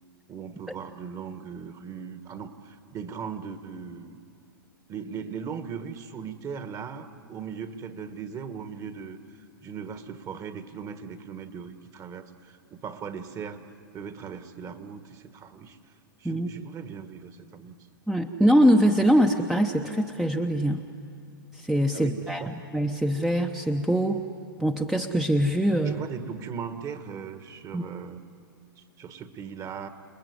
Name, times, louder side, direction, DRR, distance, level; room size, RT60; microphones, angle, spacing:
voice 1, 0.3-4.2 4.9-9.2 9.6-13.6 13.9-15.8 16.2-17.7 21.9-22.6 25.8-28.2 28.8-29.9, right 6 dB, 30° right, 10 dB, 1.6 m, -38 dB
voice 2, 18.1-20.8 21.5-24.2 24.6-26.0 27.7-27.8, equal, 5° right, 4 dB, 0.9 m, -23 dB
29.0 x 20.5 x 9.6 m, 2.4 s
hypercardioid pair, 125°, 12 cm